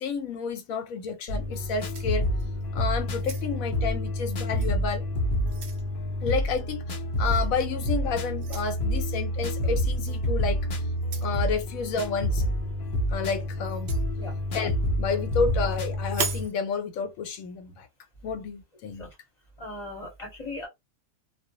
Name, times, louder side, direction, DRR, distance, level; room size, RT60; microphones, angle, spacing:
voice 1, 0.0-2.3 2.7-5.0 6.2-10.6 11.2-12.4 13.1-13.9 14.5-17.9 18.2-19.1, left 5 dB, 75° left, 1.0 m, -30 dB
sound 1, 1.3-16.5, equal, 55° left, 0.6 m, -28 dB
sound 2, 1.5-2.7 3.1-3.8 4.6-4.7 5.2-5.9 7.3-7.5 8.4-8.7 10.0-10.2 11.0-11.4 13.6-14.1 16.0-16.5, right 5 dB, 55° right, 0.7 m, -37 dB
voice 2, 19.6-20.7, left 2 dB, 30° left, 0.8 m, -38 dB
2.5 x 2.0 x 2.7 m
omnidirectional pair, 1.5 m